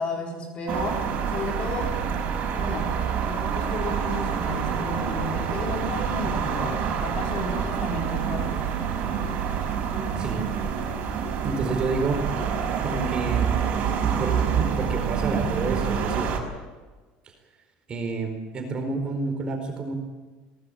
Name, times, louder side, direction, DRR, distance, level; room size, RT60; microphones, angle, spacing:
voice 1, 0.0-2.0 2.6-2.9 3.3-8.7, left 1 dB, 35° left, 1 dB, 3.9 m, -33 dB
sound 1, 0.7-16.4, right 7 dB, 45° right, 5.7 m, -27 dB
voice 2, 10.2-10.5 11.4-12.3 12.8-13.7 14.0-16.3 17.9-19.9, right 3 dB, 25° right, 5 dB, 4.4 m, -29 dB
22.0 x 19.0 x 8.8 m, 1.3 s
cardioid pair, 155°, 3 cm